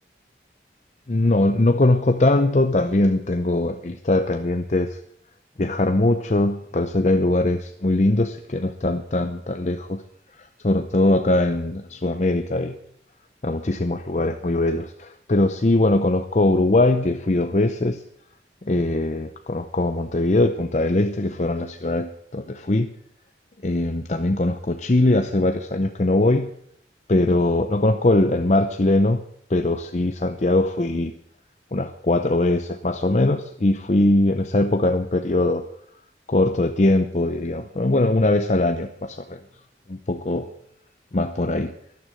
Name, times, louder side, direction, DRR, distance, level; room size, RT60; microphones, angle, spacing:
voice 1, 1.1-5.0 5.6-10.0 10.3-12.8 13.4-18.0 18.6-22.9 23.6-26.5 27.1-29.2 29.5-31.1 31.7-35.6 36.3-39.4 39.9-40.5 41.1-41.7, left 2 dB, 40° left, 7 dB, 0.7 m, -21 dB
13.0 x 12.0 x 7.6 m, 0.71 s
head